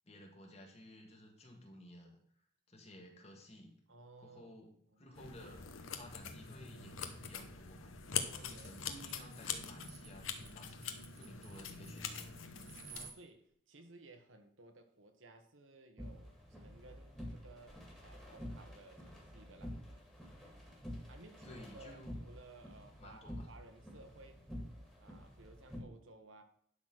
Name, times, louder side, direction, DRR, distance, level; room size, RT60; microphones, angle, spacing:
voice 1, 0.1-2.2 2.7-3.8 4.2-5.6 5.9-7.9 8.4-12.4 21.4-22.1 23.0-23.5, left 1 dB, 30° left, 1 dB, 1.8 m, -55 dB
voice 2, 3.9-4.6 4.9-5.0 8.3-8.7 11.5-11.7 12.9-19.8 21.1-24.5 25.0-26.4, right 2 dB, 80° right, 6 dB, 1.3 m, -58 dB
sound 1, 5.1-13.1, left 7 dB, 90° left, 1.0 m, -44 dB
sound 2, 8.4-13.2, right 8 dB, 45° right, 1.0 m, -56 dB
sound 3, 16.0-25.8, equal, 5° left, 1.9 m, -49 dB
11.5 x 4.1 x 6.0 m, 0.65 s
head